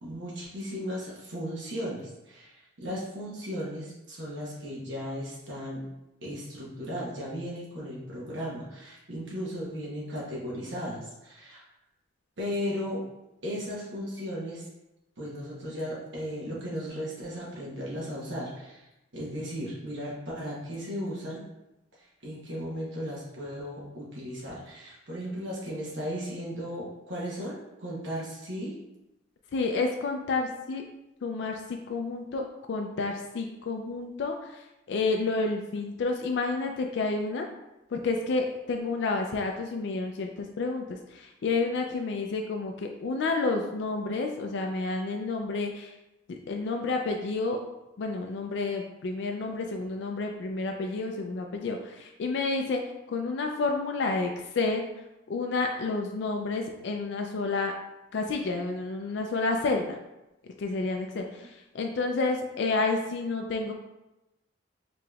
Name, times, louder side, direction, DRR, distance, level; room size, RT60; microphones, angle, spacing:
voice 1, 0.0-5.9 6.2-11.6 12.4-13.0 13.4-14.7 15.2-18.9 19.1-21.4 22.0-28.8, equal, 70° right, -6 dB, 0.9 m, -36 dB
voice 2, 29.5-30.8 31.2-37.5 37.9-45.9 46.3-47.6 48.0-52.8 53.1-54.9 55.3-57.7 58.1-60.0 60.6-63.7, left 3 dB, 60° left, 2 dB, 0.3 m, -30 dB
4.9 x 2.9 x 2.3 m, 0.96 s
head